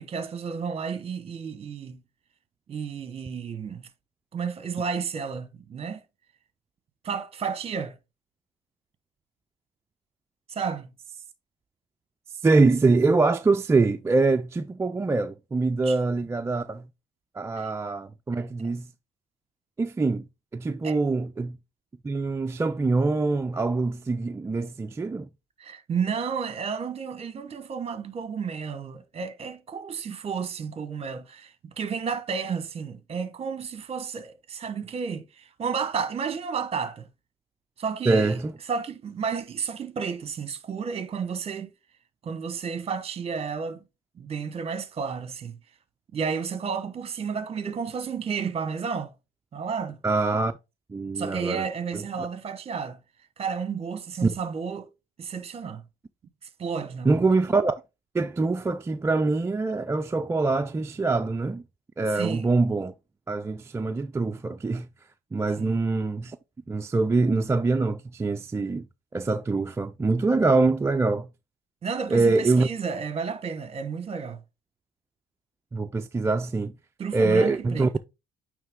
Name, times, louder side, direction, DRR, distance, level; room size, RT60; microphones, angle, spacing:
voice 1, 0.0-2.0 2.7-3.9 4.3-6.0 7.0-7.9 10.5-10.9 15.8-15.9 17.6-17.7 20.8-21.0 25.6-37.1 37.8-38.4 38.7-41.7 42.2-43.8 44.2-45.6 46.1-49.1 49.5-50.0 51.1-53.0 53.4-54.9 55.2-55.8 56.6-57.1 62.1-62.5 65.6-65.8 71.8-74.4 77.0-78.0, right 6 dB, 35° right, 1.0 m, -32 dB
voice 2, 12.4-16.8 17.3-18.9 19.8-20.2 20.5-21.6 22.0-25.3 38.1-38.5 50.0-50.5 50.9-51.7 51.9-52.0 54.2-54.3 57.1-57.8 58.1-61.6 62.0-62.9 63.3-64.9 65.3-66.4 66.7-68.9 69.1-71.3 72.1-72.7 75.7-76.7 77.1-77.9, right 3 dB, 15° right, 0.3 m, -24 dB
9.0 x 3.2 x 3.6 m
cardioid pair, 110°, 17 cm